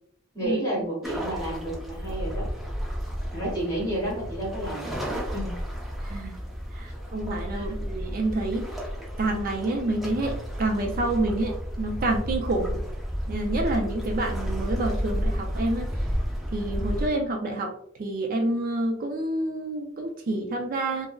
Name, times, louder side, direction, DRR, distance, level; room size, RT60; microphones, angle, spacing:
voice 1, 0.3-2.5 3.3-4.9 5.3-5.6 7.5-7.7, right 1 dB, 20° left, -5 dB, 1.2 m, -30 dB
Morecambe Sea, 1.0-17.1, equal, ahead, 0.6 m, -32 dB
voice 2, 6.0-6.4 6.7-8.8 9.2-12.8 13.3-15.9 16.5-21.1, right 2 dB, 45° right, 3 dB, 0.3 m, -28 dB
3.5 x 2.0 x 2.2 m, 0.70 s
head